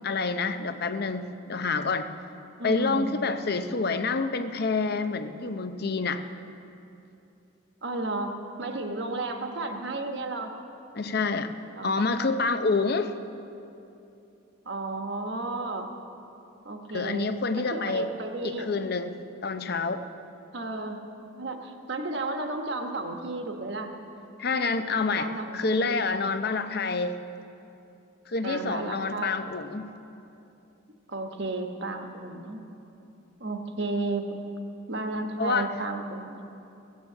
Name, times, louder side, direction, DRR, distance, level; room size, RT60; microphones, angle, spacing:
voice 1, 0.0-2.1 2.6-6.2 10.9-11.5 11.8-13.1 16.9-18.1 18.4-19.1 19.4-20.0 24.4-25.3 25.5-27.2 28.3-29.9 35.4-35.7, left 4 dB, 50° left, 9 dB, 0.6 m, -27 dB
voice 2, 2.6-3.2 3.6-3.7 7.8-10.5 11.7-12.0 14.6-15.9 16.6-18.7 20.5-21.0 21.3-23.9 25.2-25.9 28.4-29.5 31.1-32.6 33.4-34.3 34.9-36.4, right 2 dB, 55° right, 4 dB, 1.2 m, -33 dB
16.5 x 9.3 x 7.4 m, 2.8 s
head